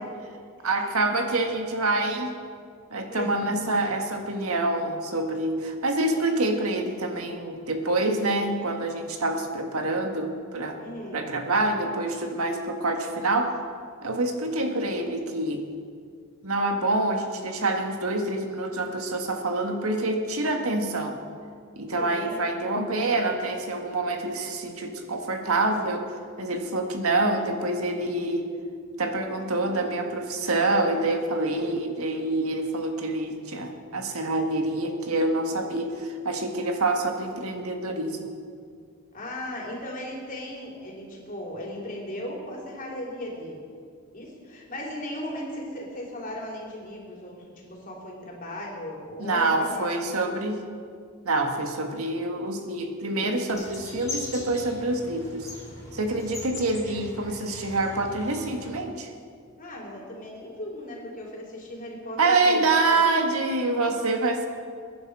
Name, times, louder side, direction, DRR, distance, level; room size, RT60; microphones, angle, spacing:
voice 1, 0.6-2.4 2.9-10.8 11.1-13.5 14.0-15.6 16.4-21.2 21.8-26.1 26.4-28.5 29.0-38.3 49.2-50.6 51.2-55.5 55.9-59.1 62.2-64.5, right 2 dB, 85° right, 4 dB, 1.7 m, -26 dB
voice 2, 10.8-11.2 22.0-22.4 39.1-43.6 44.1-50.0 59.6-62.7, left 1 dB, 40° left, -2 dB, 3.4 m, -37 dB
sound 1, 53.5-58.8, left 2 dB, 15° left, 3.6 m, -40 dB
22.0 x 10.5 x 4.8 m, 2.2 s
head